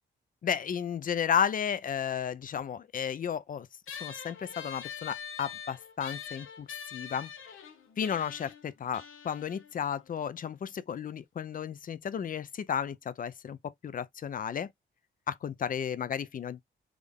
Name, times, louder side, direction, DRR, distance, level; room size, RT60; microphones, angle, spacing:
voice 1, 0.4-3.7 4.0-7.3 8.0-14.7 15.3-16.6, left 8 dB, 45° left, 0.4 m, -33 dB
sound 1, 3.9-10.7, left 7 dB, 90° left, 0.8 m, -45 dB
3.6 x 2.0 x 3.5 m
cardioid pair, 75°, 20 cm